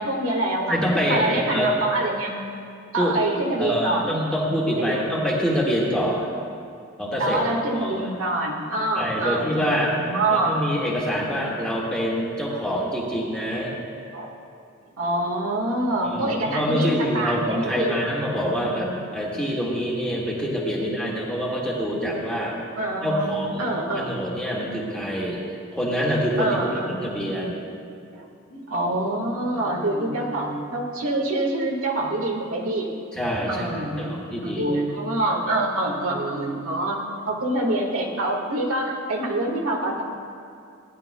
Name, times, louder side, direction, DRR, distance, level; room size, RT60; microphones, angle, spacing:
voice 1, 0.0-0.8 1.1-2.4 2.9-4.1 4.7-5.1 7.2-10.5 14.1-14.4 15.0-18.0 18.6-18.9 22.8-24.1 26.4-27.0 28.1-32.9 33.5-37.0 37.3-40.0, right 1 dB, 85° right, 0 dB, 1.5 m, -26 dB
voice 2, 0.7-1.7 3.0-3.1 3.6-6.3 7.0-7.4 7.7-8.0 8.9-9.9 10.3-13.7 16.0-22.5 23.0-23.7 23.9-25.4 25.7-26.6 26.9-27.6 33.1-34.8, equal, 5° left, -5 dB, 1.6 m, -25 dB
17.5 x 10.5 x 2.2 m, 2.4 s
head